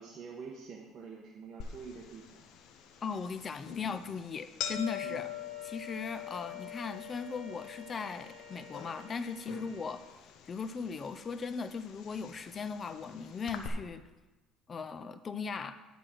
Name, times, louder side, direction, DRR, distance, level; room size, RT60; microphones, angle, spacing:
voice 1, 0.0-2.4 5.0-5.3 9.5-9.6, right 5 dB, 40° right, -1 dB, 1.0 m, -46 dB
sound 1, 1.6-13.7, left 9 dB, 60° left, 0.9 m, -45 dB
voice 2, 3.0-5.3 5.6-14.1 14.7-15.8, left 5 dB, 25° left, 11 dB, 0.4 m, -38 dB
Bowed string instrument, 5.2-10.1, equal, 10° right, 2.1 m, -56 dB
9.7 x 5.0 x 6.1 m, 1.2 s
cardioid pair, 140°, 0 cm